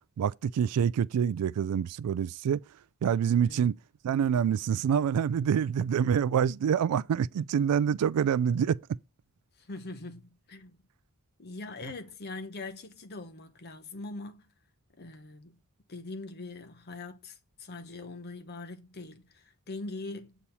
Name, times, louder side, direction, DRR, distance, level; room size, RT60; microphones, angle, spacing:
voice 1, 0.2-2.6 3.0-3.8 4.0-8.8, right 8 dB, 90° right, 0.3 m, -26 dB
voice 2, 3.4-3.7 9.6-10.8 11.4-14.5 15.0-15.6 15.9-20.4, left 3 dB, 45° left, 0.8 m, -42 dB
8.3 x 3.0 x 5.4 m
head